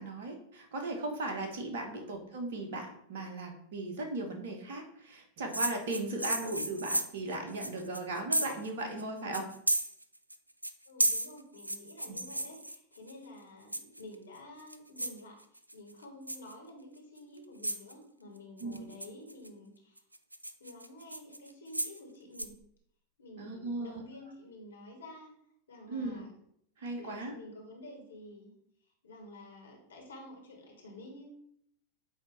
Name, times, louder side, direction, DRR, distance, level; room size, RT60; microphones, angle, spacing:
voice 1, 0.0-9.5 12.1-12.2 18.6-18.8 23.4-24.0 25.9-26.2 26.8-27.3, right 2 dB, 55° right, 4 dB, 1.2 m, -37 dB
sound 1, 5.5-8.7 9.0-9.1 9.3-10.4 10.6-13.1 13.7-14.1 14.6-15.2 15.6-15.9 16.3-16.5 17.2-17.3 17.6-17.9 18.6-19.5 20.0-22.0 22.3-22.4, right 1 dB, 85° right, 0.4 m, -33 dB
voice 2, 10.9-20.0 20.6-22.5 23.2-25.3 25.7-26.3 26.9-28.5 29.0-31.3, left 1 dB, 70° left, 0 dB, 1.7 m, -50 dB
8.2 x 2.9 x 4.5 m, 0.70 s
figure-of-eight pair, 90°, 0 cm